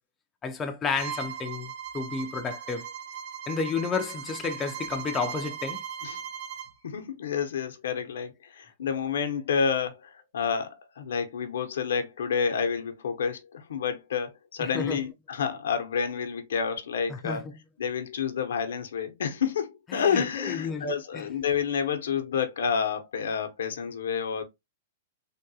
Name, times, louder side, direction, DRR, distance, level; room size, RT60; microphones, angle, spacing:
voice 1, 0.4-2.9 3.5-5.8 14.6-15.0 17.1-17.5 19.9-21.2, left 5 dB, 15° left, 0.4 m, -32 dB
Bowed string instrument, 0.9-6.7, right 8 dB, 50° right, 1.1 m, -38 dB
voice 2, 6.8-17.5 17.8-24.4, left 6 dB, 85° left, 0.7 m, -29 dB
3.5 x 2.2 x 2.7 m
hypercardioid pair, 145°, 0 cm